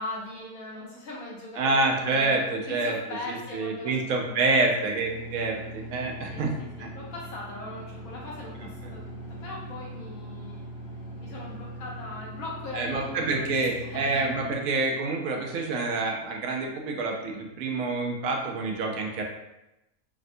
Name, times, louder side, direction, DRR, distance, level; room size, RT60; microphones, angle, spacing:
voice 1, 0.0-4.7 6.3-10.7 11.2-14.2, left 2 dB, 75° left, -5 dB, 1.3 m, -40 dB
voice 2, 1.6-3.0 3.3-6.5 6.8-6.9 12.7-19.2, right 3 dB, 75° right, 1 dB, 1.0 m, -27 dB
sound 1, 4.9-14.6, equal, 55° left, 1.1 m, -41 dB
3.4 x 2.1 x 2.6 m, 0.93 s
omnidirectional pair, 1.5 m